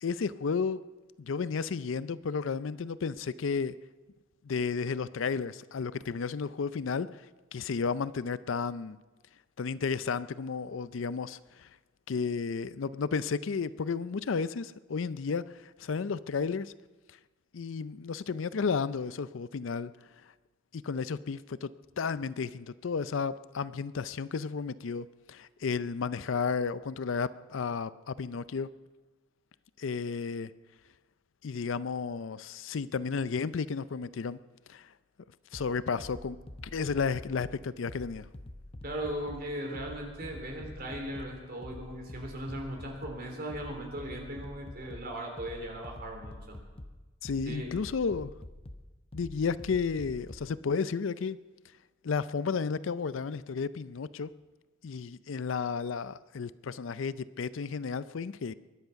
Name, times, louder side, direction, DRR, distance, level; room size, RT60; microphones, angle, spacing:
voice 1, 0.0-0.8 1.2-3.8 4.4-7.2 7.5-9.0 9.6-11.7 12.1-16.7 17.5-19.9 20.7-21.7 22.0-28.7 29.8-30.5 31.4-34.4 34.7-34.9 35.5-36.4 36.7-38.3 47.2-48.3 49.1-51.4 52.0-54.3 54.8-58.5, left 5 dB, 70° left, 16 dB, 0.5 m, -32 dB
sound 1, 35.5-50.5, left 1 dB, 30° left, 0.9 m, -47 dB
voice 2, 38.8-46.6 47.5-47.7, right 1 dB, 45° right, 2 dB, 3.4 m, -38 dB
23.0 x 10.5 x 5.8 m, 1.2 s
head